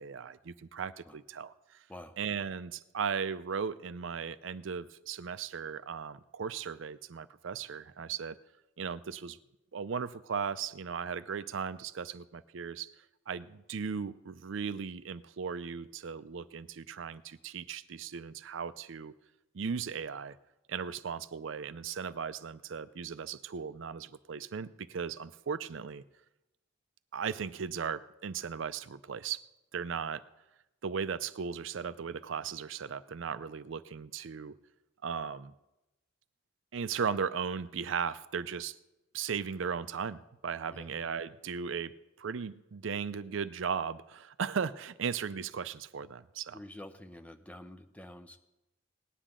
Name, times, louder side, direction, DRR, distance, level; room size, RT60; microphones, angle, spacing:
voice 1, 0.0-1.8 2.2-8.4 8.8-9.4 9.7-12.9 13.3-19.1 19.5-20.4 20.7-26.0 27.1-29.4 29.7-30.2 30.8-34.6 35.0-35.5 36.7-38.8 39.1-46.6, right 6 dB, 70° right, 15 dB, 0.5 m, -37 dB
voice 2, 46.5-48.4, left 1 dB, 5° left, 7 dB, 0.7 m, -48 dB
18.5 x 10.0 x 3.7 m, 0.95 s
head